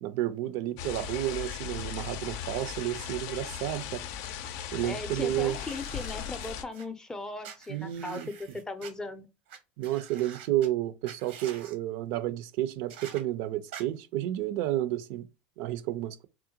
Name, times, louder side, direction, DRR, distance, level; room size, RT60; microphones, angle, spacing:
voice 1, 0.0-4.0 4.7-5.6 7.7-8.3 9.8-15.3 15.6-16.3, right 13 dB, 65° right, 0.4 m, -31 dB
sound 1, 0.8-6.6, left 9 dB, 65° left, 0.4 m, -38 dB
voice 2, 4.8-9.3, left 2 dB, 10° left, 0.5 m, -38 dB
sound 2, 5.5-6.9 7.4-8.9 9.5-9.6 9.8-10.7 11.0-11.8 12.9-13.2 13.7-13.8, right 8 dB, 85° right, 0.9 m, -47 dB
3.6 x 2.1 x 2.8 m
supercardioid pair, 125°, 6 cm